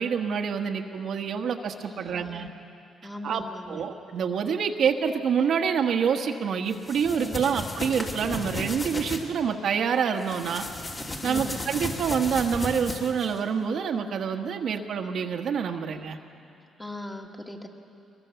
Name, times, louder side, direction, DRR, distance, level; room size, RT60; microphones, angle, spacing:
voice 1, 0.0-2.5 3.2-10.6 11.2-16.2, right 6 dB, 65° right, 4 dB, 1.4 m, -27 dB
voice 2, 1.8-2.5 3.0-3.8 7.2-7.5 11.2-11.6 15.8-16.0 16.8-17.7, left 1 dB, 15° left, 1 dB, 2.2 m, -40 dB
sound 1, 6.7-9.2 10.2-13.4, left 2 dB, 30° left, 2.9 m, -35 dB
22.0 x 21.5 x 7.0 m, 2.6 s
cardioid pair, 90°, 0 cm